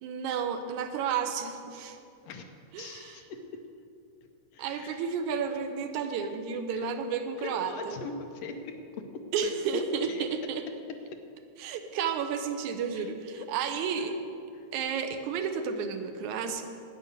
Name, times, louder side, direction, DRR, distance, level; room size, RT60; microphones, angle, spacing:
voice 1, 0.0-2.0 2.7-3.2 4.6-7.9 9.3-10.6 11.6-14.1 14.7-16.7, right 6 dB, 90° right, 7 dB, 2.3 m, -32 dB
voice 2, 2.8-3.6 4.5-5.1 6.7-6.9 7.4-9.8 10.1-11.0 12.9-13.1 13.4-14.2 14.5-14.7, left 4 dB, 70° left, 5 dB, 1.7 m, -41 dB
11.5 x 9.5 x 6.7 m, 2.5 s
omnidirectional pair, 3.3 m